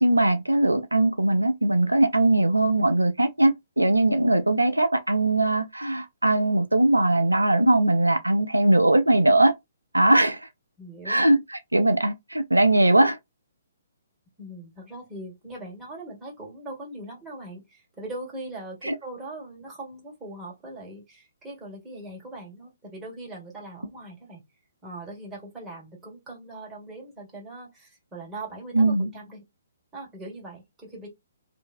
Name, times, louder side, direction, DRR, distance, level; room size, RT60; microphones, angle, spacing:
voice 1, 0.0-9.5 9.9-10.5 11.1-13.2 18.8-19.0 28.7-29.1, right 1 dB, 90° right, 0.4 m, -20 dB
voice 2, 10.8-11.3 14.4-24.4 24.8-29.4 29.9-31.1, right 2 dB, 15° right, 1.7 m, -40 dB
2.7 x 2.6 x 2.5 m
figure-of-eight pair, 130°, 0 cm